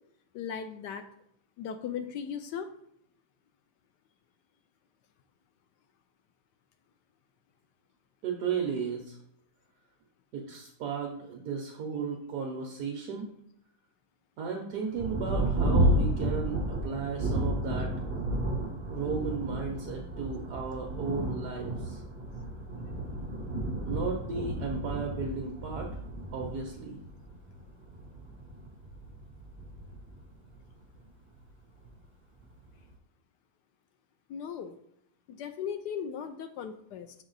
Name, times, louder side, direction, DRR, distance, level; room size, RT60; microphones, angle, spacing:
voice 1, 0.3-1.0 1.6-2.7 34.3-34.8 35.3-37.1, left 7 dB, 80° left, 7 dB, 0.9 m, -37 dB
voice 2, 8.2-9.2 10.3-13.3 14.4-17.9 18.9-22.0 23.9-25.9 26.3-27.0, right 5 dB, 60° right, 1 dB, 1.2 m, -35 dB
Thunder, 15.0-31.0 31.8-31.9 32.4-32.9, right 1 dB, 10° right, 0.9 m, -32 dB
7.1 x 4.4 x 3.9 m, 0.72 s
omnidirectional pair, 2.3 m